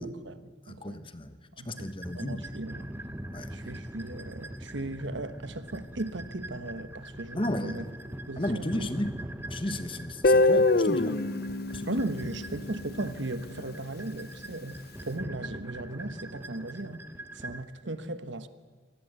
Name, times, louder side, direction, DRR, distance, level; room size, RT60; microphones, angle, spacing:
voice 1, 0.0-1.1 1.6-2.9 3.5-7.8 8.3-8.9 11.9-17.1 17.3-18.5, right 2 dB, 70° right, 1.2 m, -37 dB
voice 2, 0.7-1.4 1.6-2.4 3.3-3.5 7.3-7.9 8.4-9.1 9.5-11.2 11.7-11.9, left 1 dB, 25° left, 1.2 m, -33 dB
sound 1, 1.8-17.6, right 1 dB, 10° right, 0.9 m, -42 dB
Guitar, 10.2-13.2, left 2 dB, 55° left, 0.8 m, -25 dB
25.5 x 19.0 x 8.0 m
head